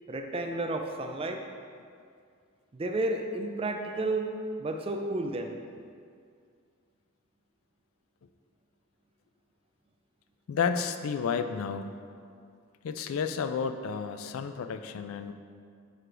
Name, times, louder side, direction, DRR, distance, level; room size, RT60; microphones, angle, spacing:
voice 1, 0.1-1.5 2.7-4.3 4.6-5.6, right 2 dB, 25° right, 4 dB, 0.3 m, -32 dB
voice 2, 10.5-12.0 12.8-15.3, left 6 dB, 75° left, 9 dB, 0.3 m, -31 dB
9.3 x 4.8 x 2.5 m, 2.3 s
head